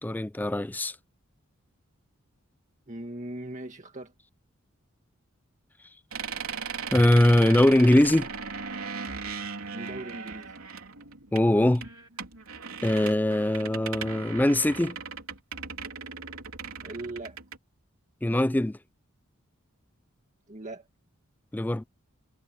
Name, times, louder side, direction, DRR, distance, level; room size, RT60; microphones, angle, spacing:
voice 1, 0.0-1.0 6.9-8.3 11.3-11.9 12.8-15.0 18.2-18.8 21.5-21.8, left 1 dB, 10° left, 0.3 m, -22 dB
voice 2, 2.9-4.1 9.7-10.5 16.8-17.4 20.5-20.9, right 2 dB, 35° right, 1.9 m, -39 dB
sound 1, 6.1-17.6, right 5 dB, 80° right, 3.6 m, -38 dB
head